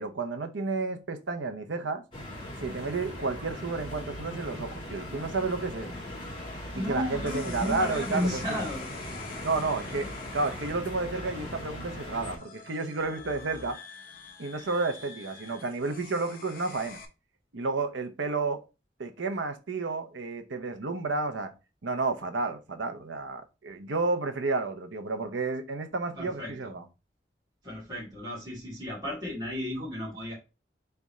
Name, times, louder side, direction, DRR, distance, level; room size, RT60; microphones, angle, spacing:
voice 1, 0.0-2.0 2.6-5.9 6.9-8.6 9.4-10.1 10.3-13.8 14.4-17.0 17.5-18.6 19.0-21.5 21.8-26.8, right 3 dB, 80° right, 0.8 m, -31 dB
sound 1, 2.1-12.4, left 1 dB, 25° left, 1.7 m, -39 dB
voice 2, 6.8-8.8 26.2-26.7 27.6-30.3, left 1 dB, 20° right, 2.0 m, -33 dB
sound 2, 7.3-17.1, left 4 dB, 50° left, 0.7 m, -46 dB
3.7 x 3.4 x 4.1 m
head